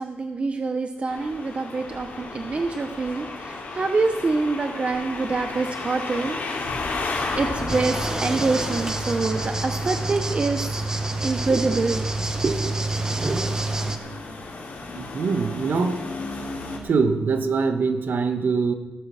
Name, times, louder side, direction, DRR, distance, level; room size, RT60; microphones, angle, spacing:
voice 1, 0.0-6.4 7.4-10.6 10.9-12.1 12.4-12.7 13.2-13.4, right 3 dB, 30° right, 6 dB, 0.8 m, -26 dB
sound 1, 1.1-16.8, left 3 dB, 50° left, 3.1 m, -34 dB
sound 2, 7.7-14.0, right 2 dB, 15° right, 1.1 m, -27 dB
voice 2, 15.0-16.0 16.8-18.7, right 4 dB, 55° right, 7 dB, 1.3 m, -23 dB
16.0 x 8.7 x 6.5 m, 1.2 s
wide cardioid pair, 125°, 4 cm